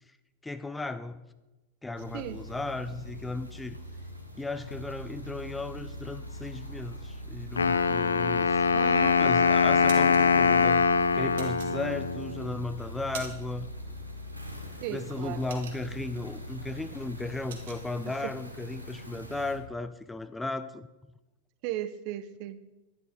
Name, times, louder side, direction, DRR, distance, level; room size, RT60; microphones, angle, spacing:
voice 1, 0.4-1.3 1.8-3.8 4.4-8.7 9.2-10.9 11.1-13.7 14.9-20.9, left 2 dB, 10° left, 0.5 m, -35 dB
sound 1, 1.9-19.5, equal, 90° right, 1.7 m, -42 dB
Wind instrument woodwind instrument, 7.6-12.5, left 5 dB, 75° left, 0.5 m, -23 dB
voice 2, 8.7-9.2 14.8-15.4 18.1-18.3 21.6-22.6, right 12 dB, 45° right, 0.8 m, -36 dB
sound 2, 9.9-10.2 11.4-12.2 12.7-13.6 13.9-14.2 14.5-16.2 16.6-16.8 17.0-17.8, right 6 dB, 60° right, 1.8 m, -44 dB
11.0 x 10.5 x 5.2 m
figure-of-eight pair, 90°, 0 cm